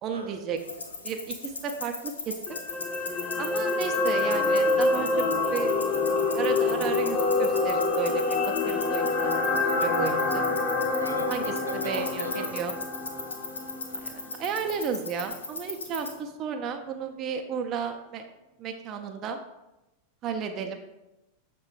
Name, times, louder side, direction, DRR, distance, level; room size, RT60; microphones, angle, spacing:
voice 1, 0.0-0.6 1.0-2.6 3.4-5.7 6.3-10.4 11.3-12.7 13.9-18.3 18.6-19.4 20.2-20.8, right 6 dB, 35° right, 5 dB, 0.4 m, -33 dB
sound 1, 0.6-16.1, left 3 dB, 75° left, 0.6 m, -38 dB
voice 2, 0.6-1.0 11.0-12.5, equal, 85° right, 3 dB, 0.5 m, -37 dB
sound 2, 2.5-14.8 15.1-15.3, left 3 dB, 20° left, 0.5 m, -27 dB
6.1 x 2.2 x 3.6 m, 0.96 s
figure-of-eight pair, 90°, 0 cm